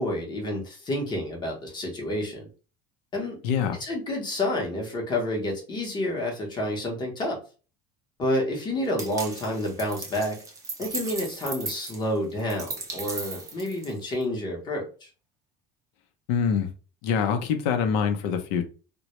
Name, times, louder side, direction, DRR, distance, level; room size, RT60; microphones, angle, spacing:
voice 1, 0.0-2.5 3.1-3.4 3.8-7.4 8.2-10.4 10.8-15.1, left 1 dB, 20° left, 0 dB, 0.7 m, -29 dB
voice 2, 3.4-3.8 16.3-16.7 17.0-18.7, left 7 dB, 80° left, 7 dB, 0.6 m, -24 dB
sound 1, 9.0-14.2, right 3 dB, 15° right, 0.4 m, -37 dB
2.1 x 2.0 x 2.8 m, 0.36 s
cardioid pair, 160°, 19 cm